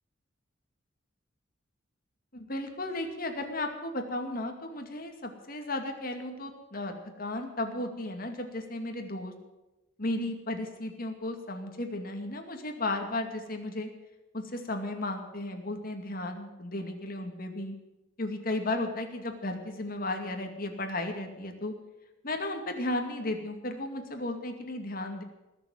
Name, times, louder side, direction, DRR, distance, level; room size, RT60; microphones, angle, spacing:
voice 1, 2.3-9.3 10.0-13.9 14.3-17.8 18.2-21.7 22.2-25.2, left 2 dB, 50° left, 5 dB, 2.4 m, -34 dB
20.0 x 7.3 x 9.6 m, 1.0 s
head